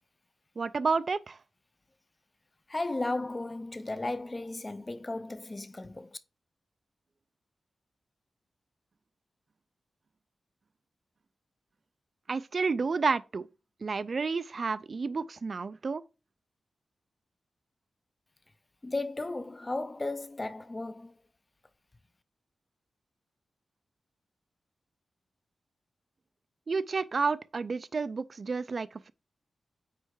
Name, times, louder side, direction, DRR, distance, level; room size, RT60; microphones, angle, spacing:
voice 1, 0.6-1.4 12.3-13.5 13.8-16.0 26.7-29.1, right 4 dB, 40° right, 0.4 m, -30 dB
voice 2, 2.7-6.1 18.8-21.2, left 2 dB, 20° left, 0.5 m, -35 dB
9.0 x 3.3 x 4.7 m
wide cardioid pair, 165°, 0 cm